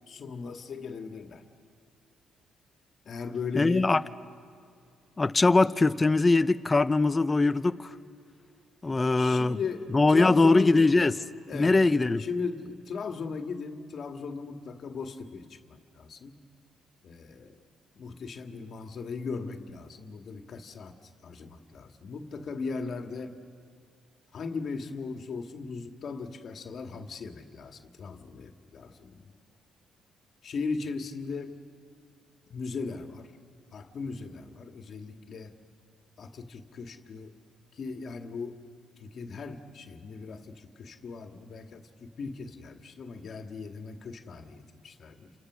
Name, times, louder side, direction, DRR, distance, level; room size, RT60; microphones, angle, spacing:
voice 1, 0.1-1.4 3.1-3.9 9.1-10.9 11.5-11.8 12.2-16.4 17.0-17.6 18.0-20.9 21.2-23.4 24.3-29.3 30.4-31.6 32.5-33.3 33.7-35.5 36.2-37.3 37.7-38.6 39.0-45.3, left 4 dB, 55° left, 2.0 m, -38 dB
voice 2, 3.6-4.0 5.2-7.9 8.8-9.6 9.9-11.1 11.5-12.3, left 3 dB, 25° left, 0.7 m, -22 dB
29.5 x 27.5 x 6.3 m
supercardioid pair, 75°, 0 cm